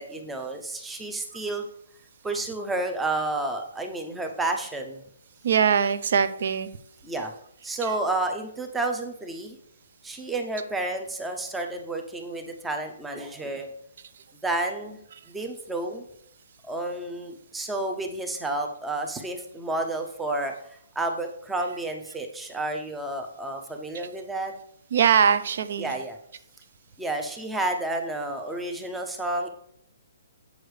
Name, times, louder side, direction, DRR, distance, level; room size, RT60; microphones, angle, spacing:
voice 1, 0.0-1.6 2.2-5.0 7.0-7.3 7.6-9.6 10.0-13.7 14.4-15.0 15.3-16.0 16.7-24.5 25.8-26.2 27.0-29.5, right 2 dB, 5° right, 4 dB, 0.6 m, -30 dB
voice 2, 5.4-6.7 7.8-7.9 24.9-26.0, right 7 dB, 50° right, 14 dB, 0.5 m, -22 dB
7.9 x 6.4 x 3.2 m, 0.70 s
hypercardioid pair, 170°, 0 cm